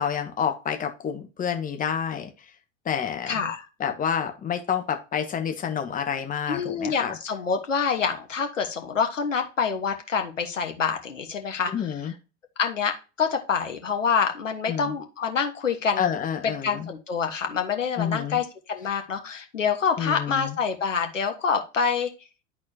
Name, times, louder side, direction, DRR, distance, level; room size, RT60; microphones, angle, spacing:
voice 1, 0.0-2.3 2.8-3.4 3.8-7.2 11.7-12.1 14.7-14.9 16.0-16.9 18.0-18.4 20.0-20.5, left 8 dB, 20° left, 6 dB, 1.3 m, -28 dB
voice 2, 3.3-3.7 6.5-11.9 12.6-16.1 16.4-22.1, left 6 dB, 75° left, 5 dB, 1.5 m, -26 dB
11.5 x 4.3 x 2.8 m, 0.30 s
figure-of-eight pair, 85°, 38 cm